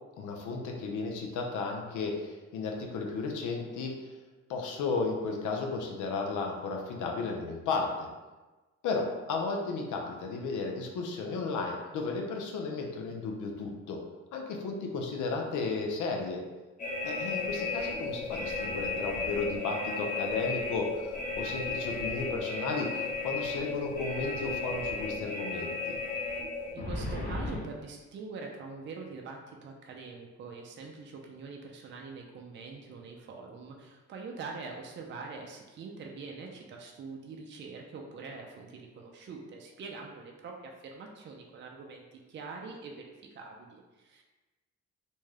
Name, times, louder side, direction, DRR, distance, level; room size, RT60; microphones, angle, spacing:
voice 1, 0.2-4.2 4.5-8.1 8.8-14.0 14.3-16.4 17.0-25.9, left 4 dB, 80° left, 2 dB, 0.6 m, -34 dB
sound 1, 16.8-27.6, left 3 dB, 25° left, 0.6 m, -34 dB
voice 2, 26.7-44.2, right 4 dB, 40° right, 1 dB, 0.4 m, -44 dB
2.6 x 2.2 x 3.2 m, 1.2 s
cardioid pair, 90°, 30 cm